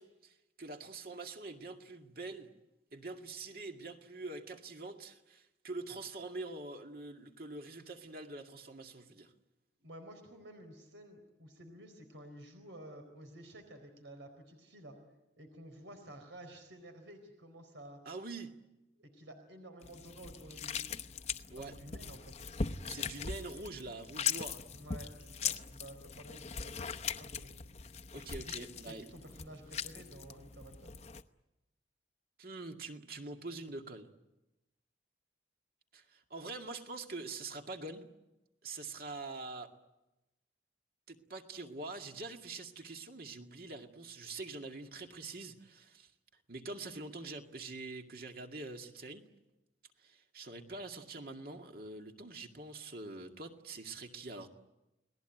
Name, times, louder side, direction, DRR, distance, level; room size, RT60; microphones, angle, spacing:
voice 1, 0.0-2.5 2.9-9.3 18.1-18.6 21.5-21.8 22.9-24.6 28.1-29.0 32.4-34.1 35.9-38.1 38.6-39.7 41.1-46.1 46.5-49.2 50.0-54.5, right 3 dB, 50° right, 4 dB, 2.2 m, -45 dB
voice 2, 9.8-15.0 15.4-18.1 19.0-20.8 21.6-23.1 24.7-26.9 27.2-27.5 28.4-30.9, right 1 dB, 85° right, 5 dB, 4.2 m, -52 dB
sound 1, 19.8-31.2, left 6 dB, 35° left, 0.8 m, -40 dB
29.5 x 19.5 x 9.2 m, 0.99 s
head